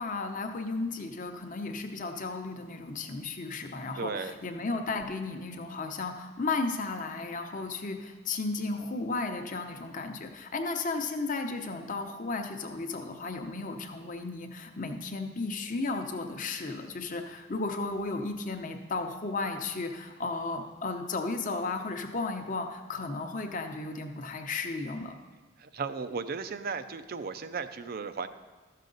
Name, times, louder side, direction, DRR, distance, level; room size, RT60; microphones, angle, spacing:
voice 1, 0.0-25.1, left 3 dB, 40° left, 5 dB, 0.8 m, -34 dB
voice 2, 4.0-4.3 25.6-28.3, right 5 dB, 50° right, 11 dB, 0.5 m, -35 dB
13.5 x 6.6 x 3.9 m, 1.3 s
head